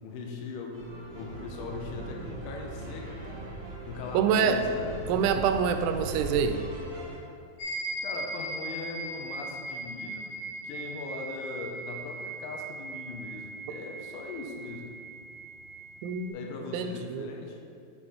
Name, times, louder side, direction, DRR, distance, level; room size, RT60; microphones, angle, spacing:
voice 1, 0.0-3.4 3.9-4.9 8.0-10.3 10.6-14.9 16.3-17.6, left 4 dB, 80° left, 1 dB, 3.1 m, -40 dB
sound 1, 0.7-7.2, right 2 dB, 65° right, 1.7 m, -39 dB
voice 2, 4.1-4.6 5.1-6.6 16.0-16.4 16.7-17.3, right 7 dB, 85° right, 7 dB, 3.0 m, -26 dB
Bell Meditation, 7.6-16.3, right 2 dB, 50° left, 2.3 m, -39 dB
7.1 x 6.1 x 4.3 m, 2.4 s
omnidirectional pair, 5.4 m